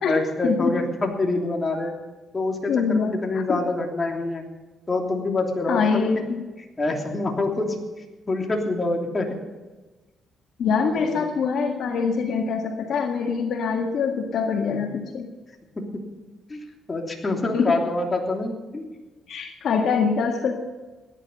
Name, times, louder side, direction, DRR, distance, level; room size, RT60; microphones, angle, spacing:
voice 1, 0.0-1.9 2.3-4.4 4.9-6.2 6.8-7.8 8.3-9.3 10.9-11.3 15.7-16.0 16.5-18.9, left 2 dB, 25° left, 1 dB, 3.1 m, -26 dB
voice 2, 2.7-3.6 5.7-6.4 10.6-15.3 17.5-17.8 19.3-20.5, left 5 dB, 65° left, 2 dB, 1.7 m, -24 dB
17.0 x 11.0 x 5.5 m, 1.2 s
cardioid pair, 90°, 0 cm